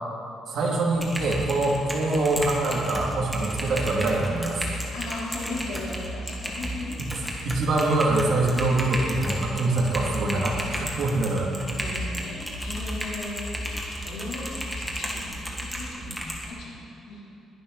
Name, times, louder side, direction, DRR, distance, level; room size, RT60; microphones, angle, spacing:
voice 1, 0.5-4.8 7.4-11.5, right 2 dB, 60° right, -2 dB, 2.7 m, -24 dB
Typing, 0.9-16.5, equal, ahead, 1.7 m, -33 dB
voice 2, 4.9-7.0 11.8-17.2, left 2 dB, 80° left, -4 dB, 3.7 m, -37 dB
21.5 x 11.0 x 4.2 m, 2.9 s
cardioid pair, 175°, 0 cm